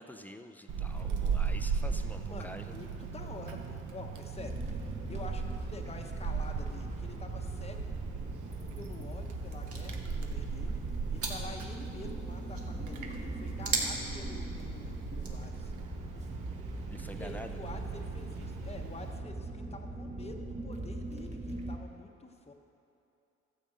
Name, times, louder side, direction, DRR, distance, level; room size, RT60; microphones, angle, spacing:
voice 1, 0.0-2.7 3.1-3.3 16.9-17.6, left 1 dB, 5° left, 6 dB, 0.7 m, -47 dB
Wind, 0.7-19.2, right 6 dB, 80° right, 1.0 m, -38 dB
voice 2, 2.2-4.8 5.1-7.8 8.6-10.8 11.1-15.7 17.1-22.5, left 3 dB, 20° left, 3 dB, 1.1 m, -48 dB
sound 1, 4.4-21.8, right 2 dB, 20° right, 1.3 m, -40 dB
sound 2, 7.7-15.5, right 3 dB, 50° right, 1.7 m, -41 dB
13.0 x 5.2 x 7.7 m, 2.8 s
cardioid pair, 90°, 30 cm